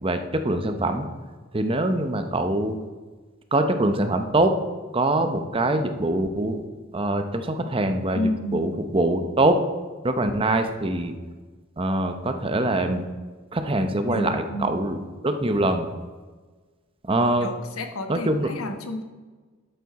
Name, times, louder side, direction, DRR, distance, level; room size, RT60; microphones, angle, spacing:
voice 1, 0.0-1.1 1.5-2.7 3.5-4.6 4.9-6.6 6.9-9.6 10.0-11.1 11.8-13.0 13.5-15.0 15.2-15.9 17.1-17.5 18.1-18.5, right 1 dB, 25° right, 7 dB, 0.8 m, -23 dB
voice 2, 8.1-8.7 14.0-14.8 17.4-19.0, left 1 dB, 85° left, 6 dB, 1.2 m, -30 dB
12.5 x 8.4 x 4.1 m, 1.4 s
head